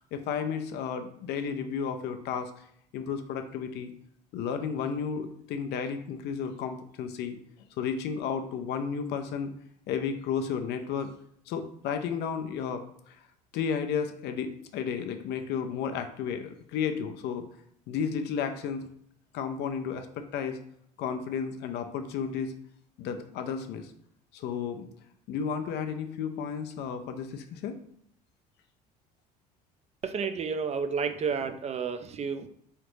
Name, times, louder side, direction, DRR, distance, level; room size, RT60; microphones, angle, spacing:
voice 1, 0.1-2.5 2.9-3.9 4.3-7.4 7.8-9.5 9.9-11.1 11.5-13.2 13.5-17.4 17.9-18.9 19.3-20.6 21.0-22.5 23.0-23.9 24.3-24.9 25.3-27.8, left 7 dB, 60° left, 7 dB, 0.6 m, -33 dB
voice 2, 30.0-32.5, right 6 dB, 35° right, 8 dB, 0.5 m, -31 dB
3.8 x 3.3 x 3.1 m, 0.67 s
hypercardioid pair, 65°, 20 cm